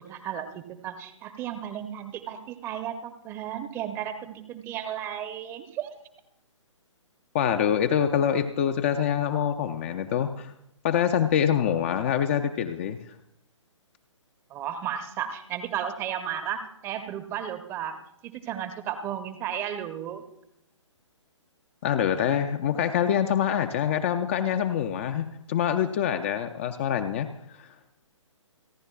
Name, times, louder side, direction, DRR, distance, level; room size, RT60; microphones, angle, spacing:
voice 1, 0.0-5.9 14.5-20.2, right 9 dB, 15° right, 9 dB, 0.7 m, -34 dB
voice 2, 7.3-10.5 10.8-13.0 21.8-27.7, left 9 dB, 25° left, 7 dB, 0.5 m, -25 dB
29.0 x 10.5 x 2.3 m, 0.79 s
figure-of-eight pair, 130°, 16 cm